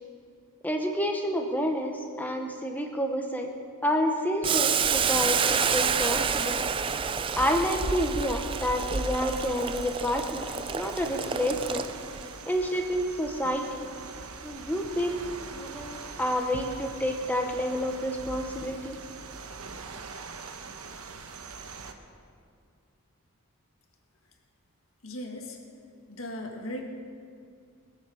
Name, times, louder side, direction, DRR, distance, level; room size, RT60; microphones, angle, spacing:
voice 1, 0.6-3.5 3.8-6.7 7.4-11.8 12.5-13.8 14.4-15.2 15.5-19.0, equal, 10° left, 3 dB, 0.8 m, -29 dB
Boiling, 4.4-12.2, right 7 dB, 25° right, 0.3 m, -29 dB
sound 1, 4.9-21.9, right 3 dB, 80° right, 1.0 m, -40 dB
voice 2, 25.0-25.6 26.1-26.8, left 1 dB, 65° left, 2 dB, 1.8 m, -37 dB
20.5 x 7.2 x 7.0 m, 2.3 s
head